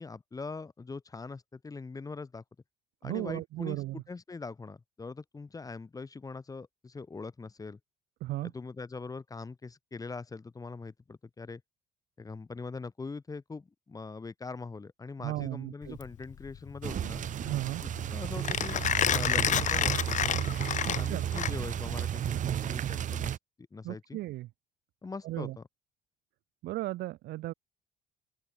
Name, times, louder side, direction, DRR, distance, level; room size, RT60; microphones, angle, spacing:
voice 1, 0.0-2.4 3.0-7.8 8.4-11.6 12.2-17.2 17.8-20.4 20.9-23.4 23.7-24.2 25.0-25.6, left 4 dB, 20° left, 1.5 m, -42 dB
voice 2, 3.0-4.0 8.2-8.5 15.2-16.0 17.4-17.8 20.8-21.3 23.8-24.5 25.2-25.6 26.6-27.5, right 17 dB, 80° right, 1.7 m, -35 dB
Mechanisms, 15.8-21.9, left 9 dB, 45° left, 1.2 m, -30 dB
sound 1, 16.8-23.4, right 10 dB, 50° right, 0.9 m, -33 dB
open air
cardioid pair, 110°, 17 cm